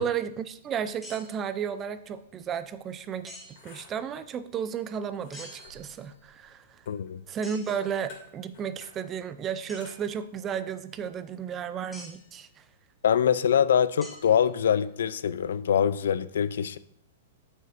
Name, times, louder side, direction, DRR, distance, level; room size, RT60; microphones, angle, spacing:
voice 1, 0.0-6.8 7.3-12.6, right 8 dB, 25° right, 13 dB, 0.4 m, -33 dB
sound 1, 1.0-1.5 3.2-3.8 5.3-6.2 7.4-7.9 9.7-9.9 11.9-12.3 14.0-14.8, equal, ahead, 1.4 m, -47 dB
sound 2, 2.4-12.2, left 4 dB, 50° left, 2.4 m, -55 dB
voice 2, 6.9-7.2 13.0-16.8, left 8 dB, 80° left, 16 dB, 0.3 m, -24 dB
7.5 x 6.2 x 2.6 m, 0.72 s
hypercardioid pair, 140°, 0 cm